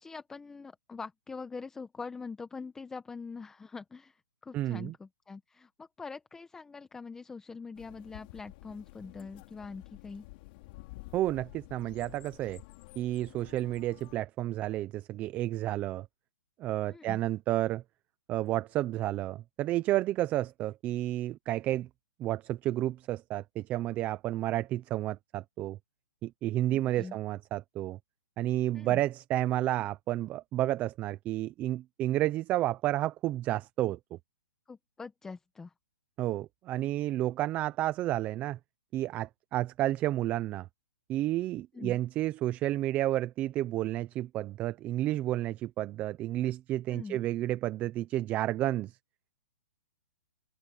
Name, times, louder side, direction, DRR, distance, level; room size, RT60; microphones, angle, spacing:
voice 1, 0.0-10.2 16.9-17.2 26.7-27.2 28.7-29.0 34.7-35.7 41.7-42.0 46.9-47.3, left 4 dB, 5° left, 1.0 m, -44 dB
voice 2, 4.5-4.9 11.1-12.6 13.0-16.1 16.6-17.8 18.3-21.9 22.2-25.8 26.2-28.0 28.4-34.2 36.2-38.6 38.9-40.7 41.1-49.0, right 14 dB, 20° right, 0.6 m, -31 dB
sound 1, 7.8-14.2, left 22 dB, 35° left, 3.3 m, -51 dB
open air
hypercardioid pair, 155°, 9 cm